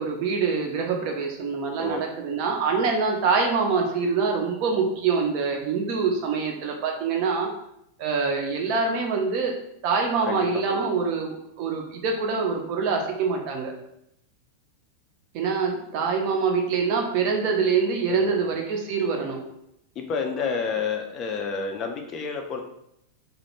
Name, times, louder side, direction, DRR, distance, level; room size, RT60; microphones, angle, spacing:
voice 1, 0.0-7.5 8.0-9.5 9.8-13.7 15.3-19.4, right 5 dB, 45° right, 1 dB, 0.4 m, -25 dB
voice 2, 18.1-18.5 20.0-22.6, left 5 dB, 30° left, 4 dB, 0.3 m, -30 dB
2.2 x 2.0 x 3.0 m, 0.77 s
figure-of-eight pair, 90°, 0 cm